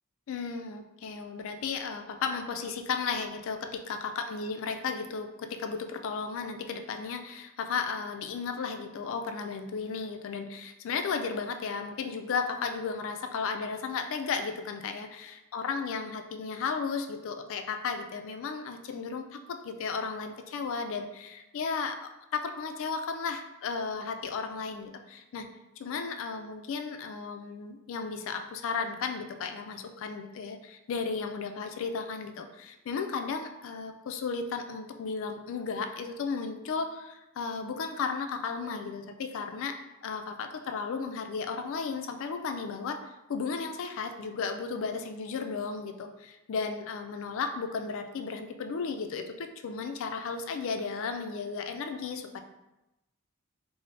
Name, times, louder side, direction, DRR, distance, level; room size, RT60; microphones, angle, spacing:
voice 1, 0.3-22.0 22.3-25.5 25.8-43.0 43.3-52.4, left 5 dB, 65° left, 7 dB, 0.3 m, -34 dB
3.9 x 2.0 x 3.2 m, 0.95 s
head